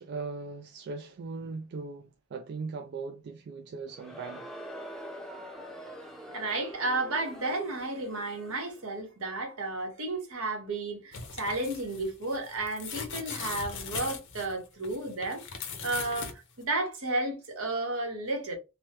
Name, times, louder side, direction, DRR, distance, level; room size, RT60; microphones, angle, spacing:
voice 1, 0.0-4.4, right 4 dB, 50° right, 0.3 m, -39 dB
Crowd, 3.9-8.9, equal, ahead, 0.6 m, -45 dB
voice 2, 6.3-15.4 15.8-16.3 16.6-18.6, right 2 dB, 80° right, 1.2 m, -32 dB
sound 1, 11.1-16.3 16.6-16.7, left 6 dB, 60° left, 0.7 m, -39 dB
3.1 x 2.2 x 2.9 m
head